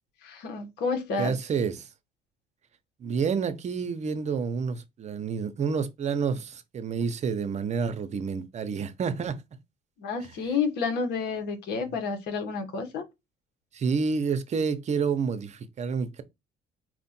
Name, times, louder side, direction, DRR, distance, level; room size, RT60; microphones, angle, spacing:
voice 1, 0.2-1.3 10.0-13.0, left 5 dB, 75° left, 1.4 m, -30 dB
voice 2, 1.2-1.9 3.0-9.4 13.7-16.2, right 5 dB, 40° right, 0.7 m, -29 dB
4.5 x 2.5 x 4.2 m
cardioid pair, 110°, 17 cm